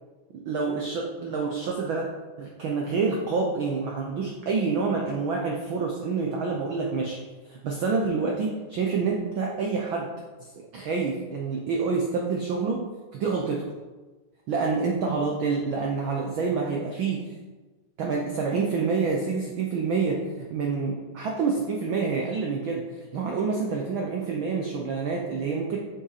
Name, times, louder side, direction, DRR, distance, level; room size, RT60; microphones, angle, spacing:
voice 1, 0.5-7.2 7.5-10.1 10.7-12.9 13.1-13.7 14.5-17.3 18.0-25.8, right 4 dB, 85° right, 0 dB, 1.1 m, -27 dB
8.5 x 5.5 x 4.1 m, 1.2 s
omnidirectional pair, 3.4 m